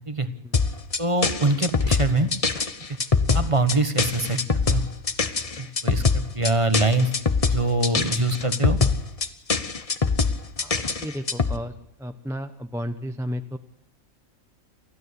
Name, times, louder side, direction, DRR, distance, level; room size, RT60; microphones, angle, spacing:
sound 1, 0.5-11.6, left 4 dB, 30° left, 0.9 m, -23 dB
voice 1, 1.0-2.3 3.3-4.8 5.6-7.1 7.5-8.8, right 2 dB, 25° right, 10 dB, 1.4 m, -24 dB
voice 2, 10.6-11.7 12.0-13.6, equal, 5° right, 8 dB, 0.7 m, -33 dB
29.5 x 12.5 x 8.3 m, 0.78 s
omnidirectional pair, 1.4 m